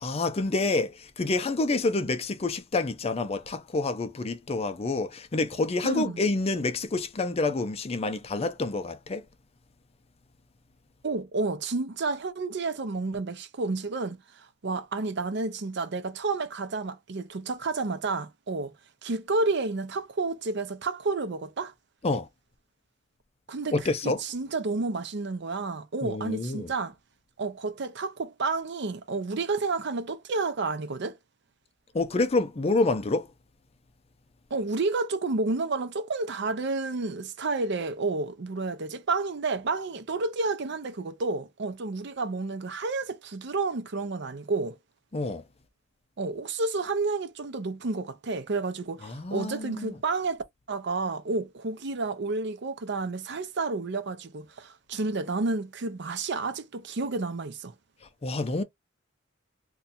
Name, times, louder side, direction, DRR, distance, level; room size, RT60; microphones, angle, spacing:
voice 1, 0.0-9.2 22.0-22.3 23.7-24.2 26.0-26.7 31.9-33.3 45.1-45.4 49.0-50.0 58.2-58.6, left 3 dB, 30° left, 0.5 m, -28 dB
voice 2, 5.8-6.2 11.0-18.7 19.0-21.7 23.5-26.9 27.4-31.2 34.5-44.8 46.2-50.4 50.7-57.7, right 3 dB, 60° right, 0.6 m, -30 dB
2.6 x 2.3 x 4.0 m
head